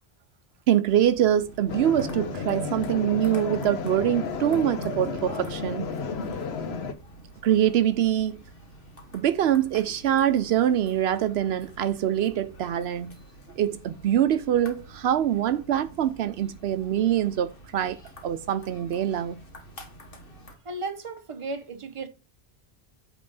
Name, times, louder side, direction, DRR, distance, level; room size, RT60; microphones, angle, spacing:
voice 1, 0.7-5.9 7.4-8.4 9.1-13.2 13.6-18.0 18.2-19.4, right 10 dB, 80° right, 0.8 m, -24 dB
sound 1, 0.9-20.6, equal, 60° left, 1.6 m, -48 dB
sound 2, 1.7-6.9, left 4 dB, 75° left, 1.1 m, -32 dB
voice 2, 20.6-22.1, right 3 dB, 30° right, 0.9 m, -34 dB
8.6 x 3.6 x 5.4 m
omnidirectional pair, 1.1 m